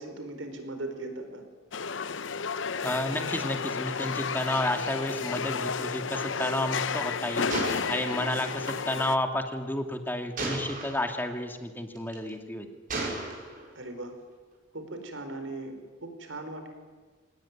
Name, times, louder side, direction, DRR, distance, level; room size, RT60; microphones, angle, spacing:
voice 1, 0.0-1.4 13.7-14.1 14.7-15.7 16.0-16.7, right 2 dB, 80° right, 6 dB, 4.8 m, -38 dB
sound 1, 1.7-9.2, left 5 dB, 70° left, 0.8 m, -32 dB
voice 2, 2.8-12.7, left 1 dB, 10° left, 4 dB, 2.2 m, -31 dB
Gunshot gunfire, 7.5-8.8 10.4-11.1 12.0-12.3 12.9-13.7, right 2 dB, 45° right, 6.1 m, -34 dB
25.5 x 19.0 x 9.8 m, 1.4 s
head